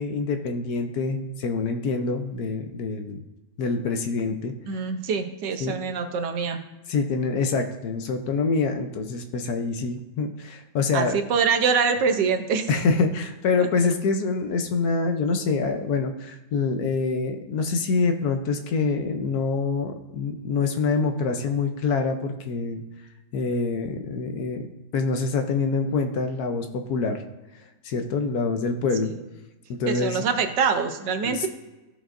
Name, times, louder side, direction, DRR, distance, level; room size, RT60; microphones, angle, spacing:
voice 1, 0.0-3.2 3.6-4.5 5.6-5.7 6.9-11.2 12.7-22.8 23.3-24.6 24.9-27.2 27.8-29.1 29.7-30.2 31.2-31.5, left 4 dB, 65° left, 6 dB, 1.2 m, -25 dB
voice 2, 4.7-6.6 10.9-12.7 13.6-13.7 29.1-29.2 29.9-31.5, right 6 dB, 85° right, 6 dB, 1.5 m, -24 dB
14.5 x 5.0 x 2.5 m, 1.1 s
omnidirectional pair, 1.8 m